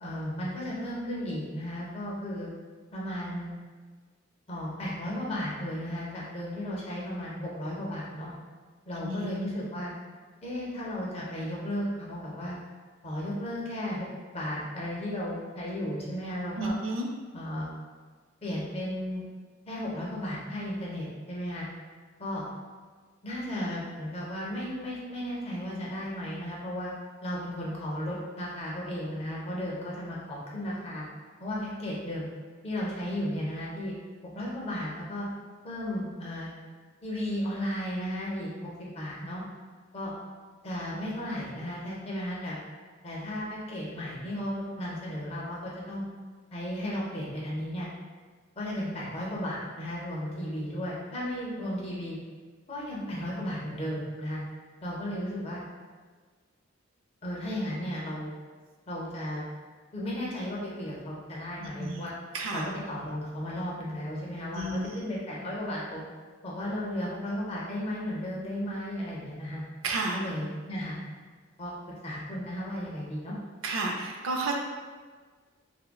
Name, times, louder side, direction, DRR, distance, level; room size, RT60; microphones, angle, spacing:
voice 1, 0.0-2.5 2.9-3.5 4.5-8.3 8.9-9.9 10.4-12.6 13.0-14.1 14.3-16.7 17.3-17.7 18.4-19.2 19.7-21.7 22.2-22.4 23.2-26.9 27.2-31.0 31.4-32.3 32.6-33.9 34.3-35.3 35.6-36.5 37.0-39.4 39.9-40.1 40.6-42.6 43.0-46.0 46.5-47.9 48.6-52.2 52.7-54.4 54.8-55.6 57.2-58.3 58.9-59.5 59.9-62.1 62.5-66.0 66.4-69.6 70.1-71.0 71.6-71.8 72.0-73.3, equal, 30° left, -5 dB, 0.6 m, -34 dB
voice 2, 9.0-9.5 16.6-17.1 61.6-62.1 62.3-62.6 64.5-64.9 69.8-70.2 73.6-74.5, right 2 dB, 85° right, 1 dB, 0.4 m, -31 dB
3.4 x 2.2 x 2.2 m, 1.5 s
head